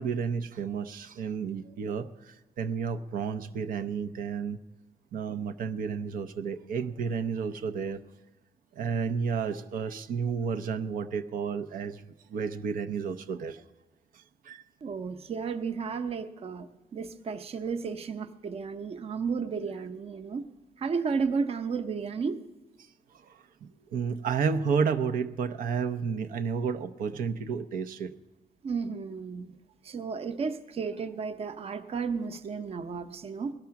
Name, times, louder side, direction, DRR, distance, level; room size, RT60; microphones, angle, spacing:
voice 1, 0.0-4.6 5.1-8.0 8.7-12.0 12.3-13.6 14.1-14.6 23.1-28.1, right 6 dB, 70° right, 9 dB, 0.7 m, -31 dB
voice 2, 14.8-20.5 20.8-22.4 28.6-29.5 29.8-33.5, right 5 dB, 40° right, 10 dB, 0.8 m, -33 dB
18.0 x 12.5 x 5.9 m, 1.1 s
cardioid pair, 140°, 15 cm